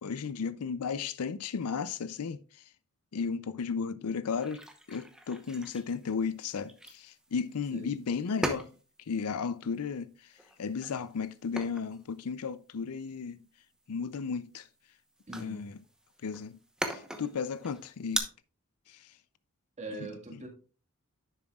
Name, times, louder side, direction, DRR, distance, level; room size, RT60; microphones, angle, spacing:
voice 1, 0.0-2.4 3.1-4.6 4.9-8.7 9.1-10.1 10.6-13.4 13.9-14.7 15.4-15.7 16.2-16.6 16.9-18.2 18.9-19.0, left 5 dB, 80° left, 0.5 m, -34 dB
sound 1, 4.4-18.2, right 1 dB, 5° right, 0.9 m, -42 dB
voice 2, 15.3-15.7 19.8-20.5, right 2 dB, 30° right, 1.8 m, -41 dB
10.0 x 7.2 x 2.3 m
head